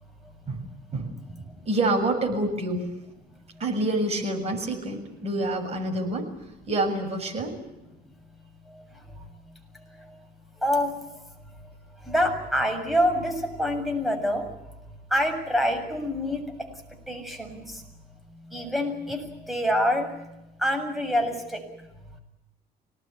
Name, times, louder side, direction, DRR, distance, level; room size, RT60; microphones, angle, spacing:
voice 1, 1.7-2.9 3.6-6.3 6.7-7.6, right 2 dB, 40° right, 4 dB, 7.0 m, -27 dB
voice 2, 10.6-10.9 12.1-14.5 15.1-16.7 17.1-17.8 18.5-20.1 20.6-21.6, equal, ahead, 3 dB, 7.1 m, -26 dB
26.0 x 19.0 x 9.9 m, 0.92 s
cardioid pair, 110°, 17 cm